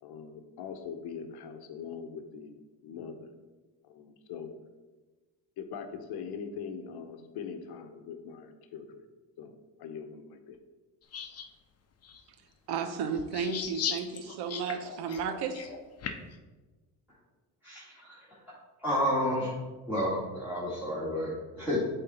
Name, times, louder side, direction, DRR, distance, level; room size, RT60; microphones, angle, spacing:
voice 1, 0.0-3.3 3.8-4.6 5.6-9.0 9.4-9.5 9.8-10.6, left 6 dB, 70° left, 7 dB, 0.9 m, -42 dB
sound 1, 11.1-11.4 12.0-12.2 13.2-16.3, left 7 dB, 40° left, 0.7 m, -37 dB
voice 2, 12.7-15.7, right 6 dB, 75° right, 8 dB, 0.8 m, -33 dB
voice 3, 17.6-18.4 18.8-19.6 19.9-21.8, equal, 5° right, -10 dB, 2.0 m, -31 dB
8.1 x 3.7 x 4.2 m, 1.2 s
cardioid pair, 90°, 40 cm